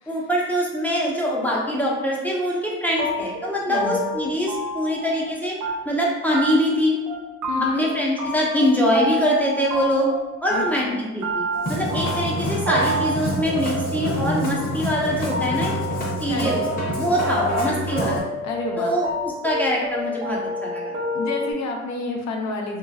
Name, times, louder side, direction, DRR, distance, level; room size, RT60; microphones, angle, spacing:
voice 1, 0.1-5.6 5.8-7.0 7.7-10.1 10.4-15.8 16.2-16.6 17.0-18.3 18.8-19.1 19.4-20.9, equal, 5° left, -4 dB, 0.6 m, -23 dB
sound 1, 3.0-5.3 5.6-6.1 6.3-6.8 7.1-7.9 8.2-10.2 10.5-21.5, right 1 dB, 75° right, 0.7 m, -29 dB
voice 2, 3.7-4.1 7.5-7.9 10.5-11.0 16.3-16.7 18.4-18.9 21.1-22.8, left 3 dB, 65° left, 1 dB, 0.6 m, -29 dB
Musical instrument, 11.5-18.2, equal, 30° left, 0.9 m, -27 dB
2.9 x 2.8 x 2.3 m, 1.2 s
cardioid pair, 90°, 30 cm